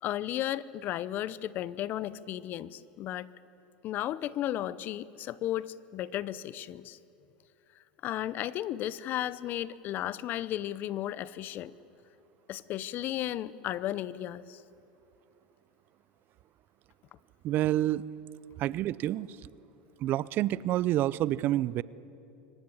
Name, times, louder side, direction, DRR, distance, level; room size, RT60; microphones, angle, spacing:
voice 1, 0.0-3.3 3.8-7.0 8.0-11.7 12.5-14.6, left 12 dB, 45° left, 18 dB, 0.7 m, -34 dB
voice 2, 17.4-18.0 18.6-19.3 20.0-21.8, right 14 dB, 50° right, 20 dB, 0.6 m, -28 dB
25.5 x 15.5 x 9.7 m, 2.9 s
hypercardioid pair, 105°, 4 cm